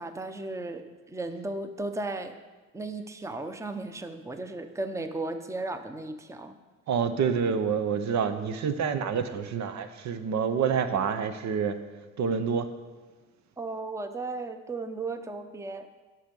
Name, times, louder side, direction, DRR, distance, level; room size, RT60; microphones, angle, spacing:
voice 1, 0.0-2.4 2.7-6.5 13.6-15.9, right 2 dB, 10° right, 8 dB, 0.7 m, -35 dB
voice 2, 6.9-11.8 12.2-12.7, right 6 dB, 65° right, 9 dB, 0.8 m, -27 dB
10.0 x 6.2 x 5.3 m, 1.3 s
cardioid pair, 90°, 30 cm